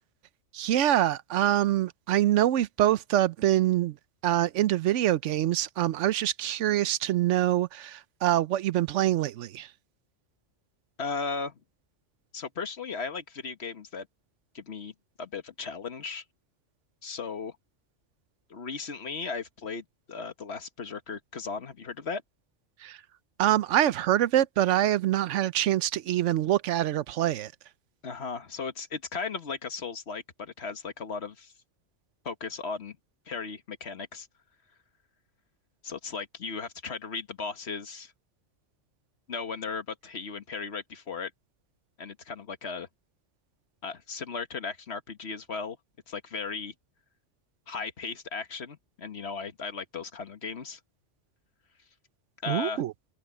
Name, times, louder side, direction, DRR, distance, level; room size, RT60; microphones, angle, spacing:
voice 1, 0.5-4.0 4.2-9.7 22.8-23.0 23.4-27.5 52.5-52.9, right 12 dB, 80° right, 0.9 m, -25 dB
voice 2, 11.0-11.5 12.3-14.1 14.5-14.9 15.2-16.2 17.0-17.6 18.5-22.2 28.0-31.5 32.2-33.0 33.3-34.3 35.8-38.1 39.3-41.3 42.0-42.9 43.8-45.8 46.1-46.7 47.7-50.8 52.4-52.8, left 5 dB, 60° left, 1.6 m, -36 dB
open air
omnidirectional pair, 1.2 m